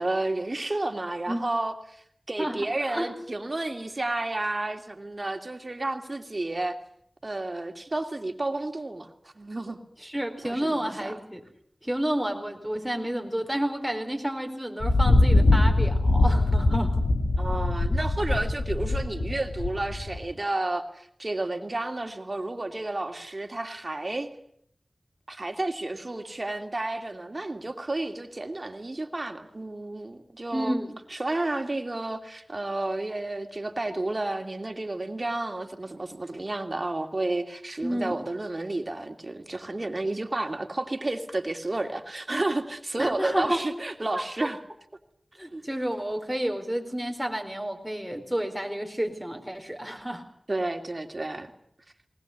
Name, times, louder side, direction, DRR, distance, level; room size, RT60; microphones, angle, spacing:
voice 1, 0.0-6.8 7.2-9.1 9.4-9.8 10.4-11.1 17.4-24.3 25.3-30.8 31.1-44.6 45.5-45.6 50.5-51.5, right 2 dB, 45° right, 6 dB, 2.7 m, -31 dB
voice 2, 2.4-3.1 10.0-11.4 11.8-17.0 30.5-30.9 37.8-38.2 43.0-43.6 44.1-44.5 45.4-50.2, right 1 dB, 5° right, 3 dB, 4.5 m, -30 dB
Thunder, 14.8-20.3, left 2 dB, 90° left, 2.0 m, -22 dB
20.0 x 20.0 x 9.4 m, 0.67 s
wide cardioid pair, 45°, 0 cm